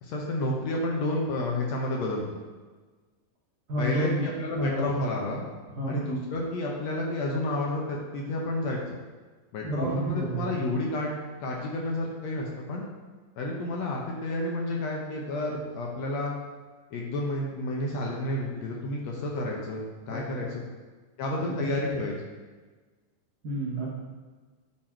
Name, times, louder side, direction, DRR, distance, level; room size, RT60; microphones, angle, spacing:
voice 1, 0.0-2.2 3.8-5.4 5.9-9.0 9.5-12.8 13.4-16.3 16.9-20.6 21.2-22.1, left 1 dB, 70° left, -1 dB, 1.8 m, -30 dB
voice 2, 3.7-4.3 4.5-4.9 5.7-6.0 9.6-10.5 20.1-20.2 21.4-21.7 23.4-23.9, right 1 dB, 65° right, -7 dB, 0.9 m, -30 dB
8.7 x 4.1 x 4.4 m, 1.4 s
omnidirectional pair, 3.7 m